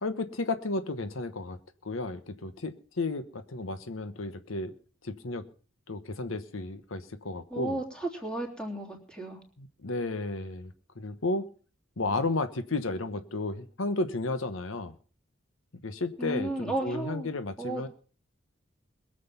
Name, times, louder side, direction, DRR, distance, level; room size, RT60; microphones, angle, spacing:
voice 1, 0.0-4.7 5.0-5.5 5.9-7.8 9.6-11.5 12.0-14.9 15.8-17.9, left 2 dB, 80° left, 10 dB, 1.1 m, -33 dB
voice 2, 7.5-9.4 16.2-17.3 17.6-17.9, right 1 dB, 5° left, 0 dB, 3.3 m, -34 dB
22.0 x 7.8 x 5.6 m, 0.40 s
head